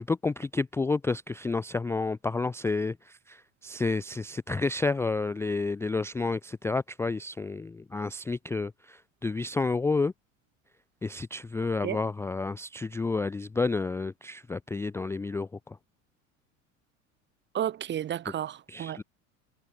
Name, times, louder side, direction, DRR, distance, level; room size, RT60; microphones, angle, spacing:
voice 1, 0.0-10.1 11.0-15.8 18.7-19.0, left 3 dB, 5° left, 0.4 m, -30 dB
voice 2, 17.5-19.0, right 10 dB, 25° right, 0.8 m, -32 dB
figure-of-eight pair, 80°, 43 cm